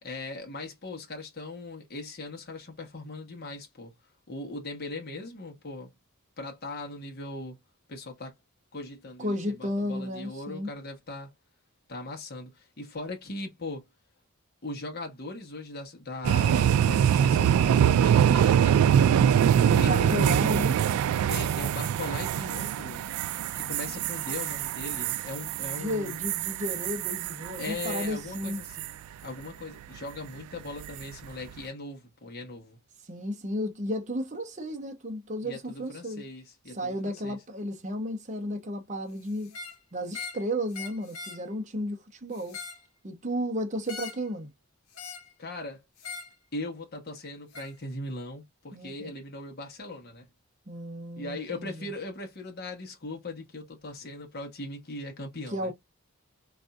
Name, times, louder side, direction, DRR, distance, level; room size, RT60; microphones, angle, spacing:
voice 1, 0.0-4.0 4.3-5.9 6.4-7.6 7.9-8.3 8.7-11.3 11.9-13.9 14.6-19.1 19.8-20.5 21.3-23.1 23.5-26.1 27.6-28.9 29.2-32.8 35.4-37.4 45.4-45.8 46.5-50.3 51.2-55.7, left 2 dB, 45° left, 1.0 m, -39 dB
voice 2, 9.2-10.7 19.5-20.8 25.6-28.6 33.0-36.2 36.7-39.6 39.9-42.6 43.0-44.5 48.7-49.1 50.7-51.8 55.5-55.7, equal, 35° right, 0.8 m, -33 dB
sound 1, 16.2-28.1 28.4-28.9 30.8-31.1, right 9 dB, 90° right, 0.3 m, -24 dB
sound 2, 39.4-39.8 40.1-40.4 40.7-41.4 42.3-42.8 43.9-44.3 44.9-45.3 46.0-46.3 47.5-47.7, left 5 dB, 80° left, 0.9 m, -40 dB
3.9 x 2.6 x 2.2 m
head